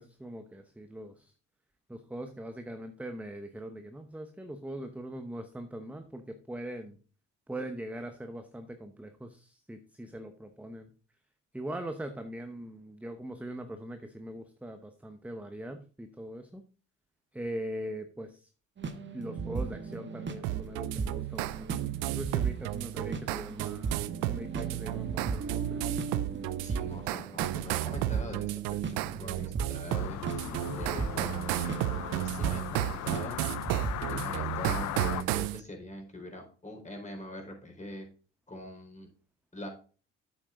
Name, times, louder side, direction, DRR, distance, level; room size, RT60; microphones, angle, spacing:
voice 1, 0.0-1.3 1.9-7.0 7.5-10.9 11.5-16.6 17.3-18.5 19.1-25.8 29.1-29.6 30.5-30.8 34.0-34.3, right 1 dB, 5° right, 7 dB, 1.0 m, -41 dB
sound 1, 18.8-29.0 29.4-29.7 30.3-32.7 33.0-33.3 33.7-34.0, right 4 dB, 30° right, 1.3 m, -37 dB
sound 2, 20.4-35.6, right 16 dB, 75° right, 0.6 m, -33 dB
voice 2, 26.6-33.4 34.1-38.1 38.5-39.1 39.5-39.7, left 1 dB, 20° left, 2 dB, 4.2 m, -44 dB
sound 3, 29.9-35.2, left 13 dB, 55° left, 0.6 m, -38 dB
8.5 x 7.8 x 3.8 m, 0.37 s
hypercardioid pair, 65°, 35 cm